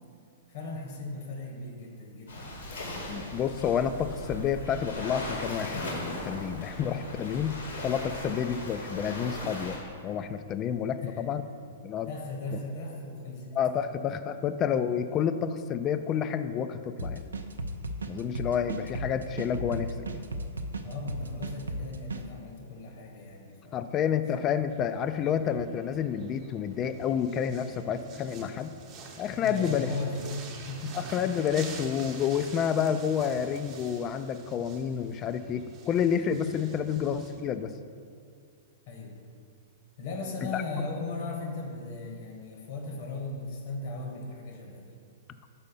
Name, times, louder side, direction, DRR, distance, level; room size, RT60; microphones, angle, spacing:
voice 1, 0.5-2.7 10.9-11.3 12.1-13.8 20.8-24.2 29.4-30.3 30.7-31.0 38.9-39.2 40.0-45.0, left 3 dB, 60° left, 1 dB, 1.2 m, -37 dB
Waves surf, 2.3-9.8, left 1 dB, 75° left, 1.5 m, -38 dB
voice 2, 3.1-7.6 7.8-11.4 11.8-12.1 13.6-17.3 18.1-20.2 23.7-28.7 29.2-29.9 30.9-37.7 40.5-40.6, left 8 dB, 30° left, 11 dB, 0.3 m, -29 dB
sound 1, 17.0-22.2, right 1 dB, 85° right, 0.4 m, -35 dB
sound 2, 24.7-37.4, right 4 dB, 35° right, 0.8 m, -47 dB
5.6 x 4.0 x 5.3 m, 2.3 s
hypercardioid pair, 120°, 0 cm